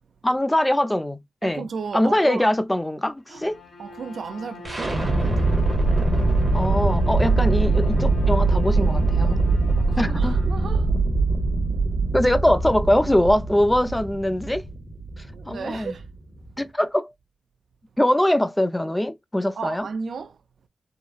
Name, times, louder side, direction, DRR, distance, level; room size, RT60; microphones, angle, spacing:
voice 1, 0.2-1.7 1.9-3.6 6.5-9.4 10.0-10.4 12.1-14.6 15.5-16.0 16.6-17.1 18.0-19.9, left 1 dB, 10° left, 0.3 m, -22 dB
voice 2, 1.4-2.5 3.3-3.4 3.8-5.6 9.8-10.9 15.3-16.0 19.6-20.4, right 5 dB, 70° right, 0.4 m, -34 dB
Bowed string instrument, 3.2-10.8, left 3 dB, 75° left, 1.6 m, -44 dB
sound 1, 4.6-16.5, right 3 dB, 25° right, 0.9 m, -22 dB
3.7 x 2.0 x 2.3 m
wide cardioid pair, 165°, 0 cm